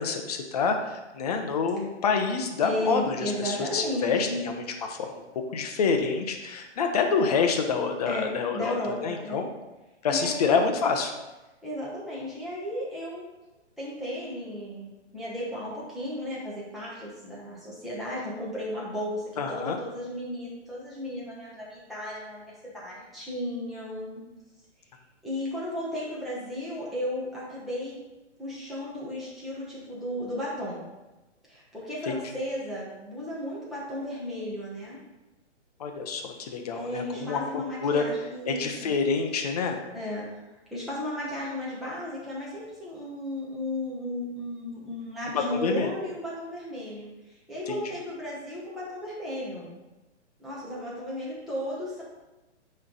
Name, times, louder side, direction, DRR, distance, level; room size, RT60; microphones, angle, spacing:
voice 1, 0.0-4.6 4.9-5.2 5.5-9.5 10.0-11.1 19.4-19.8 32.1-32.2 35.8-38.0 38.5-39.8 45.3-45.9 47.7-47.8, left 5 dB, 35° left, 4 dB, 0.7 m, -27 dB
voice 2, 2.6-4.4 8.0-9.5 10.1-10.5 11.6-13.2 13.8-24.2 25.2-28.0 28.4-30.8 31.5-35.0 36.7-38.9 39.9-40.4 40.7-49.7 50.4-52.0, left 1 dB, ahead, -8 dB, 0.9 m, -34 dB
9.6 x 3.3 x 3.9 m, 1.1 s
hypercardioid pair, 160°, 36 cm